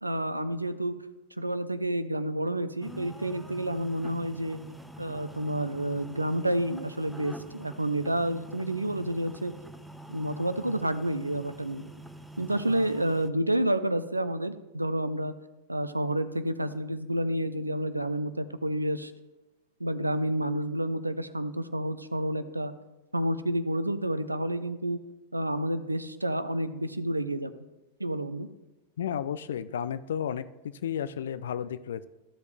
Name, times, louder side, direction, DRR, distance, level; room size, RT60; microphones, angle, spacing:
voice 1, 0.0-0.9 1.4-4.6 5.0-9.5 10.1-11.9 12.4-15.3 15.7-19.1 19.8-22.7 23.1-25.0 25.3-27.5 28.0-28.5, right 1 dB, 85° right, 12 dB, 0.5 m, -29 dB
sound 1, 2.8-13.3, right 1 dB, ahead, 0.6 m, -46 dB
voice 2, 29.0-32.0, left 9 dB, 60° left, 14 dB, 0.4 m, -33 dB
14.0 x 4.9 x 3.3 m, 1.1 s
figure-of-eight pair, 90°, 0 cm